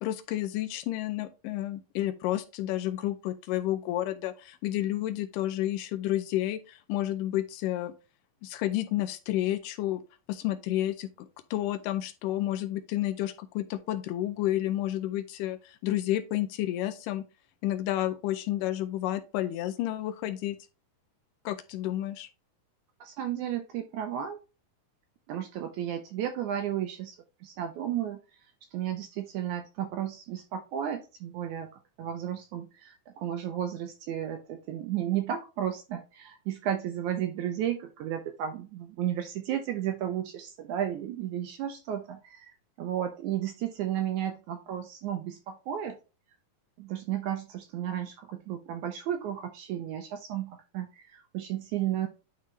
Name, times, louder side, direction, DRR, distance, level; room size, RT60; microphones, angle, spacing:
voice 1, 0.0-7.9 8.4-10.0 10.3-11.1 11.5-17.2 17.6-20.6 21.5-22.3, left 14 dB, 80° left, 2.1 m, -30 dB
voice 2, 23.0-24.4 25.3-28.2 28.7-31.7 32.0-46.0 46.8-52.1, right 10 dB, 80° right, 1.8 m, -33 dB
9.8 x 3.6 x 3.2 m
omnidirectional pair, 4.0 m